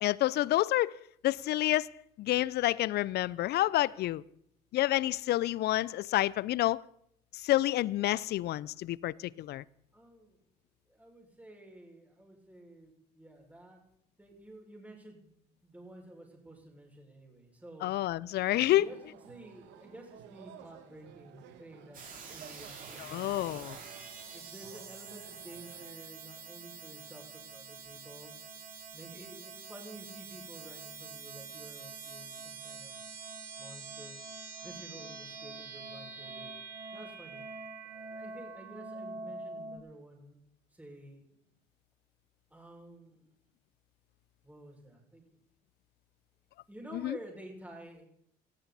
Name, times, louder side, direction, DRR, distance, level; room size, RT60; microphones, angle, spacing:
voice 1, 0.0-0.9 1.2-1.9 2.2-4.2 4.7-6.8 7.4-9.6 17.8-18.9 23.0-23.8 46.9-47.2, left 15 dB, 60° left, 0.6 m, -29 dB
voice 2, 9.9-10.4 10.9-13.8 14.2-18.1 18.7-23.7 24.3-27.2 27.5-28.3 28.9-33.0 33.6-34.2 34.6-36.5 36.9-37.4 37.8-40.4 40.7-41.2 42.5-43.3 44.4-45.2 46.7-48.0, right 1 dB, 10° right, 6.2 m, -51 dB
sound 1, 18.8-25.9, right 10 dB, 70° right, 2.0 m, -54 dB
sound 2, 21.9-39.8, right 4 dB, 45° right, 5.2 m, -45 dB
20.0 x 15.0 x 4.2 m
hypercardioid pair, 60°, 19 cm